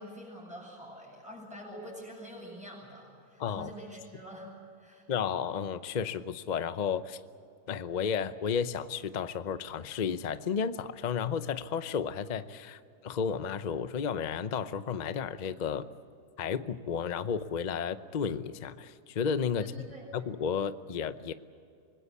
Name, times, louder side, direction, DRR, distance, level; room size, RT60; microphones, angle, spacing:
voice 1, 0.0-4.5 4.8-5.0 19.6-20.1, equal, ahead, -8 dB, 7.8 m, -46 dB
voice 2, 5.1-7.2 7.7-15.9 16.4-19.9 20.1-21.3, left 7 dB, 80° left, 12 dB, 0.4 m, -32 dB
25.0 x 21.0 x 8.4 m, 2.3 s
omnidirectional pair, 2.0 m